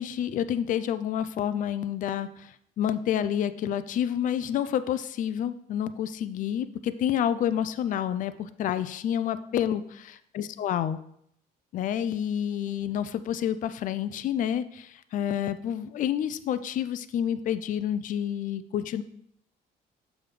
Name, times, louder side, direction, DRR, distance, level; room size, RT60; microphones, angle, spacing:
voice 1, 0.0-11.0 11.7-19.0, left 10 dB, 50° left, 12 dB, 0.4 m, -29 dB
6.8 x 6.2 x 3.2 m, 0.71 s
cardioid pair, 110°, 17 cm